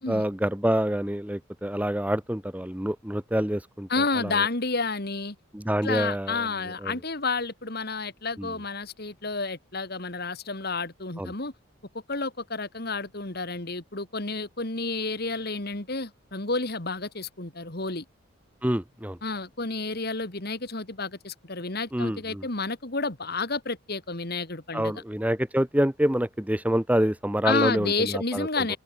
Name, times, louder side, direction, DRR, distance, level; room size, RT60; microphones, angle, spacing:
voice 1, 0.1-3.9 4.2-4.4 5.5-6.5 6.8-6.9 8.4-8.5 11.2-11.3 18.6-19.2 21.9-22.4 24.7-28.8, equal, 5° right, 1.0 m, -27 dB
voice 2, 3.9-5.4 5.8-11.5 12.1-18.0 19.2-25.0 27.4-28.8, left 3 dB, 50° left, 2.2 m, -30 dB
head